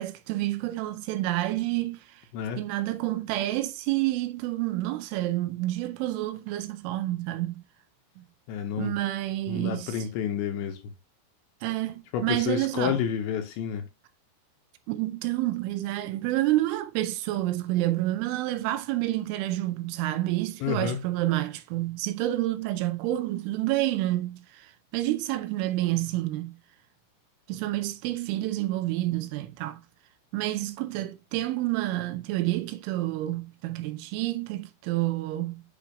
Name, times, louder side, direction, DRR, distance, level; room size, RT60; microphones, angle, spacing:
voice 1, 0.0-2.2 2.6-7.6 8.2-8.3 8.8-10.1 11.6-13.0 14.9-26.6 27.5-29.8 30.3-35.6, right 16 dB, 80° right, 3.2 m, -29 dB
voice 2, 8.5-9.0 9.5-10.8 12.1-13.8 20.6-21.0, left 8 dB, 80° left, 2.8 m, -29 dB
8.5 x 6.0 x 2.4 m
omnidirectional pair, 5.7 m